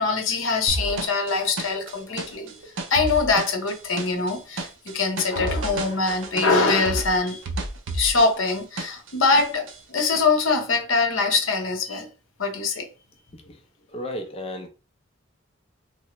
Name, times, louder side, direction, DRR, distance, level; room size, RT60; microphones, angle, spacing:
voice 1, 0.0-2.5 2.9-7.4 7.9-12.1 12.4-12.9, left 4 dB, 75° left, 0.7 m, -23 dB
sound 1, 0.7-9.1 9.4-10.2, right 2 dB, 65° right, 0.5 m, -32 dB
voice 2, 13.9-14.7, left 1 dB, 30° left, 0.4 m, -34 dB
3.2 x 2.0 x 2.9 m
head